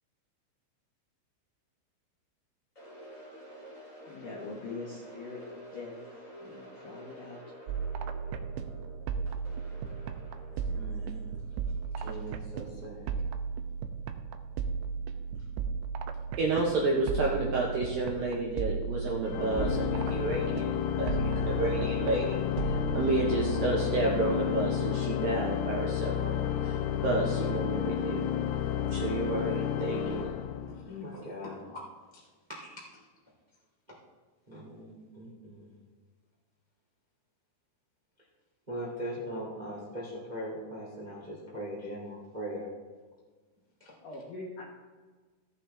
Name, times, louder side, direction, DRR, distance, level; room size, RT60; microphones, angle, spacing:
sound 1, 2.7-12.8, equal, 20° left, 2.8 m, -50 dB
voice 1, 4.1-6.0 6.4-7.4 44.0-44.6, left 3 dB, 75° left, -3 dB, 1.9 m, -42 dB
sound 2, 7.7-25.3, right 6 dB, 90° right, 2.4 m, -36 dB
voice 2, 10.6-11.3 11.9-13.2 30.7-31.8 32.1-32.2 32.5-33.0 33.9-34.0 34.5-35.8 38.7-42.7 43.8-43.9, equal, 35° right, -5 dB, 0.6 m, -40 dB
voice 3, 16.4-28.3 28.9-30.3, right 3 dB, 75° right, -2 dB, 2.2 m, -31 dB
Organ, 19.3-31.1, left 10 dB, 90° left, 3.3 m, -31 dB
16.0 x 8.4 x 3.4 m, 1.4 s
omnidirectional pair, 5.7 m